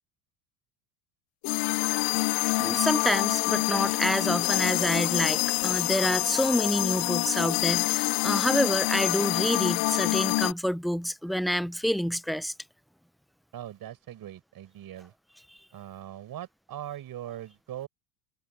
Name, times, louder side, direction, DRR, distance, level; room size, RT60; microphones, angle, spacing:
sound 1, 1.4-10.5, left 24 dB, 50° left, 0.4 m, -26 dB
voice 1, 2.6-12.5, equal, ahead, 0.6 m, -28 dB
voice 2, 13.5-15.1 15.7-17.9, right 12 dB, 45° right, 5.7 m, -40 dB
supercardioid pair, 90°, 47 cm